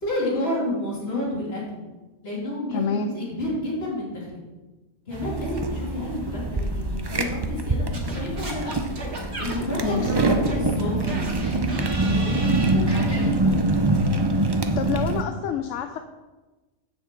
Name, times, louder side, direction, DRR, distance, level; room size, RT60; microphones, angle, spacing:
voice 1, 0.0-1.8 2.2-4.3 5.1-8.7 9.4-13.7, left 1 dB, 45° left, -5 dB, 3.2 m, -30 dB
voice 2, 2.7-3.1 9.8-10.1 14.8-16.0, left 6 dB, 65° left, 8 dB, 0.8 m, -27 dB
sound 1, 5.1-15.2, right 2 dB, 30° right, 0.4 m, -24 dB
Singing / Scratching (performance technique), 7.9-13.2, right 1 dB, 50° right, 2.1 m, -35 dB
7.4 x 6.2 x 7.5 m, 1.2 s
omnidirectional pair, 1.5 m